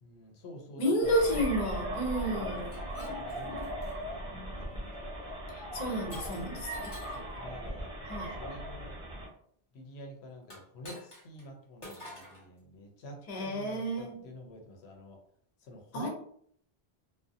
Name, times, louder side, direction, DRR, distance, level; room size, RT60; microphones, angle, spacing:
voice 1, 0.0-1.6 2.2-5.4 5.9-8.0 8.3-9.0 9.7-15.2 15.6-16.1, left 1 dB, 90° left, 2 dB, 0.9 m, -48 dB
voice 2, 0.8-2.7 5.5-6.9 8.1-8.4 13.3-14.2 15.9-16.1, equal, 45° left, 0 dB, 0.7 m, -31 dB
sound 1, 1.0-9.3, right 1 dB, 5° right, 0.9 m, -38 dB
Shatter, 2.5-3.9 4.6-4.9 6.1-7.3 10.4-11.5 11.8-12.4, left 1 dB, 30° left, 1.0 m, -49 dB
2.5 x 2.2 x 2.5 m, 0.63 s
omnidirectional pair, 1.1 m